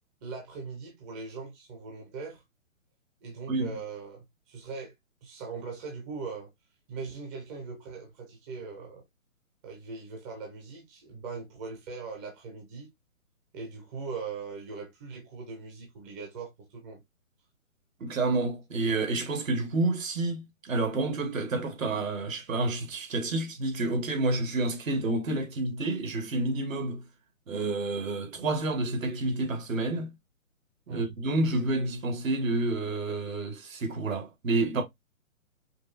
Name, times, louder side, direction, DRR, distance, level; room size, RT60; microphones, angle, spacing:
voice 1, 0.2-2.4 3.2-4.9 5.2-6.5 6.9-9.0 9.6-12.9 13.5-17.0 30.9-31.1, right 4 dB, 15° right, 0.6 m, -40 dB
voice 2, 18.0-27.1 27.5-30.1 30.9-34.8, right 2 dB, 70° right, 1.7 m, -29 dB
5.1 x 2.5 x 2.6 m
hypercardioid pair, 150°, 41 cm